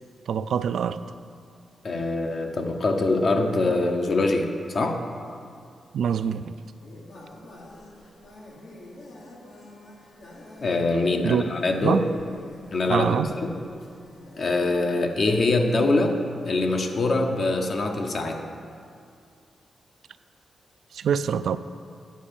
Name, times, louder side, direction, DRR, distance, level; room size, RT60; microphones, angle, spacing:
voice 1, 0.3-1.0 5.9-6.6 11.2-11.4 11.8-12.1 12.9-13.4 20.9-21.6, right 7 dB, 80° right, 12 dB, 0.3 m, -24 dB
voice 2, 1.8-5.1 10.6-12.1 12.7-13.5 14.4-16.2 16.5-18.4, left 2 dB, 55° left, 4 dB, 0.9 m, -24 dB
sound 1, 6.8-15.0, left 1 dB, 75° left, 1.6 m, -46 dB
10.0 x 5.3 x 6.9 m, 2.4 s
cardioid pair, 90°, 0 cm